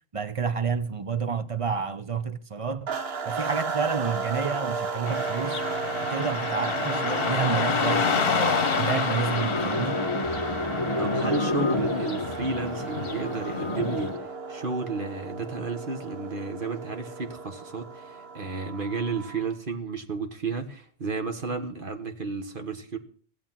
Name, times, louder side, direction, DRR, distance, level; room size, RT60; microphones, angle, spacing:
voice 1, 0.1-2.9 3.2-5.6 6.0-10.0, right 6 dB, 35° right, 0.7 m, -29 dB
sound 1, 2.9-19.6, right 4 dB, 70° right, 1.3 m, -34 dB
Car passing by / Traffic noise roadway noise, 5.1-14.1, left 5 dB, 65° left, 1.2 m, -29 dB
sound 2, 9.3-14.3, left 2 dB, 30° left, 0.8 m, -30 dB
voice 2, 11.0-23.0, right 4 dB, 55° right, 1.6 m, -32 dB
16.0 x 7.8 x 7.4 m
omnidirectional pair, 1.1 m